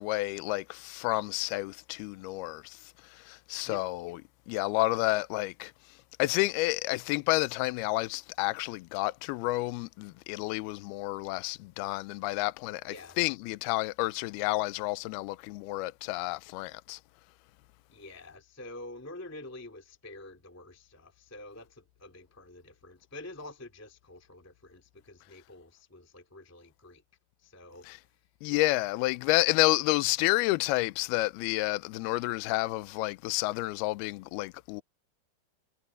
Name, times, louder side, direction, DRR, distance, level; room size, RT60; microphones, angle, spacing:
voice 1, 0.0-4.2 4.5-5.7 6.2-17.0 27.8-28.0 28.4-34.8, left 20 dB, 85° left, 2.2 m, -30 dB
voice 2, 12.8-13.2 17.9-27.0 27.4-27.9, left 2 dB, 10° left, 0.7 m, -47 dB
omnidirectional pair, 5.3 m